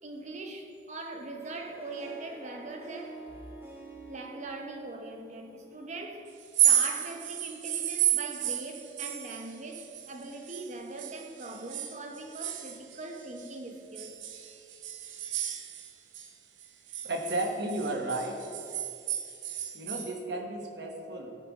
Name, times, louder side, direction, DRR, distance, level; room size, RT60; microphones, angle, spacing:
voice 1, 0.0-3.2 4.1-6.3 6.6-14.2, right 2 dB, 40° right, 0.8 m, -41 dB
Harp, 1.2-6.4, right 2 dB, 15° right, 1.3 m, -48 dB
sound 1, 6.4-10.7 11.0-13.5 14.0-16.3 16.6-20.1, right 10 dB, 90° right, 0.7 m, -32 dB
voice 2, 17.0-18.4 19.7-21.4, right 1 dB, 65° right, 1.2 m, -33 dB
14.5 x 5.6 x 3.6 m
head